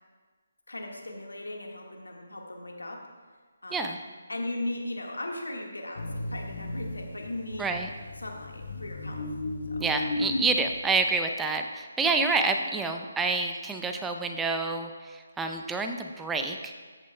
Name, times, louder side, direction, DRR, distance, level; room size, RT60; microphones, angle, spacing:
voice 1, 0.7-3.0 3.6-4.0 4.3-7.8 8.2-9.3 9.7-9.9, left 1 dB, 85° left, 1 dB, 1.5 m, -37 dB
sound 1, 6.0-11.0, left 2 dB, 60° left, 0.9 m, -35 dB
voice 2, 7.6-7.9 9.8-16.7, right 4 dB, 5° right, 5 dB, 0.5 m, -28 dB
13.0 x 8.2 x 2.2 m, 1.5 s
figure-of-eight pair, 150°, 0 cm